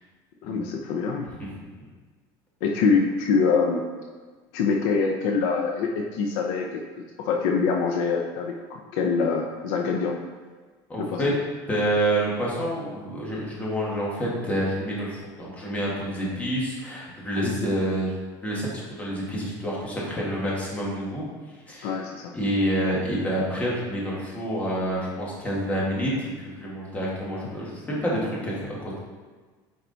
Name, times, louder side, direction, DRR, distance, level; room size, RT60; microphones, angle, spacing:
voice 1, 0.4-1.3 2.6-3.8 4.5-6.8 7.2-10.2 11.0-11.2 17.4-17.7 21.8-22.3, left 5 dB, 65° left, 3 dB, 0.7 m, -24 dB
voice 2, 10.9-11.4 11.7-18.2 18.4-18.7 19.0-21.3 21.7-21.9 22.3-29.0, right 1 dB, 15° left, -5 dB, 1.8 m, -28 dB
9.1 x 4.8 x 4.0 m, 1.4 s
cardioid pair, 170°, 10 cm